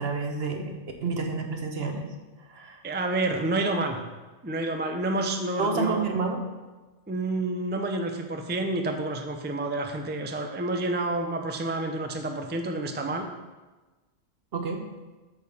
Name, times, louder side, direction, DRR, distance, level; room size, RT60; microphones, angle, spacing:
voice 1, 0.0-2.1 2.4-2.8 5.6-6.4 14.5-14.8, right 4 dB, 60° right, 4 dB, 1.2 m, -29 dB
voice 2, 2.8-4.0 4.4-6.0 7.1-13.3, right 2 dB, 10° right, 4 dB, 0.5 m, -29 dB
8.7 x 4.5 x 7.1 m, 1.2 s
omnidirectional pair, 1.2 m